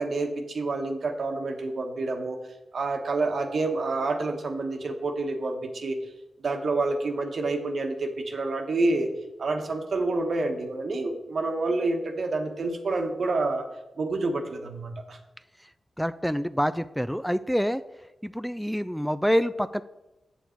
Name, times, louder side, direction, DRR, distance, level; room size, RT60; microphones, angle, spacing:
voice 1, 0.0-2.4 2.7-6.0 6.4-9.1 9.4-13.6 14.0-15.2, right 3 dB, 70° right, 5 dB, 1.1 m, -28 dB
voice 2, 16.0-17.8 18.2-19.8, equal, ahead, 13 dB, 0.4 m, -26 dB
7.1 x 7.1 x 4.4 m, 0.98 s
supercardioid pair, 40°, 0 cm